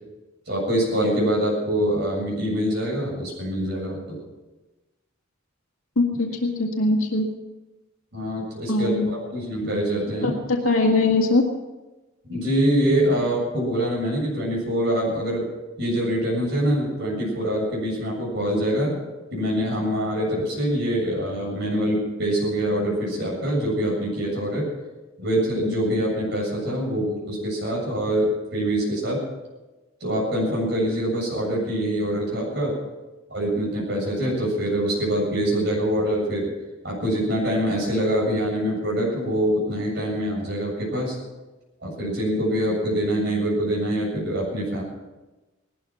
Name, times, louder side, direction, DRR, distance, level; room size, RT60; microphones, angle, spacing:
voice 1, 0.5-4.2 8.1-10.3 12.3-15.5 15.8-19.0 19.3-24.7 25.2-29.2 30.0-32.7 33.3-36.5 36.8-41.2 41.8-44.8, equal, 55° right, -3 dB, 7.6 m, -24 dB
voice 2, 6.0-7.3 8.7-9.3 10.2-11.5, left 2 dB, 85° left, 0 dB, 2.1 m, -21 dB
18.5 x 13.0 x 6.1 m, 1.1 s
head